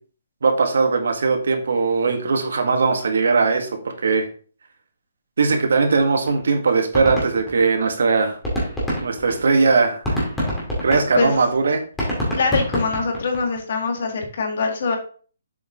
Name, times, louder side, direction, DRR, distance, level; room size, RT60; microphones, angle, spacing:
voice 1, 0.4-4.3 5.4-8.4 9.0-10.1 10.8-11.8, right 4 dB, 75° right, 5 dB, 1.7 m, -19 dB
sound 1, 6.0-6.1 6.3-6.4 6.7-8.0 8.3-13.6, equal, 5° left, 2.4 m, -26 dB
voice 2, 12.3-15.0, left 4 dB, 45° left, 4 dB, 1.7 m, -23 dB
7.6 x 5.4 x 3.7 m, 0.41 s
hypercardioid pair, 175°, 0 cm